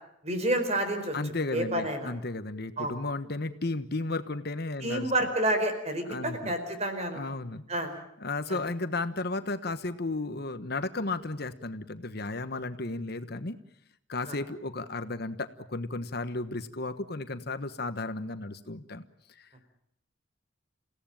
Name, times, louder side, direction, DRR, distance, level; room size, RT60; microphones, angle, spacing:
voice 1, 0.2-1.2 1.5-2.1 2.8-2.9 4.8-7.2 7.7-7.9 8.5-8.6 14.3-14.4, right 1 dB, 35° right, 7 dB, 4.7 m, -29 dB
voice 2, 1.1-5.1 6.1-6.5 7.1-7.6 8.2-13.6 14.1-19.0 19.4-19.5, left 2 dB, 55° left, 10 dB, 1.3 m, -34 dB
29.5 x 17.0 x 9.1 m, 0.75 s
head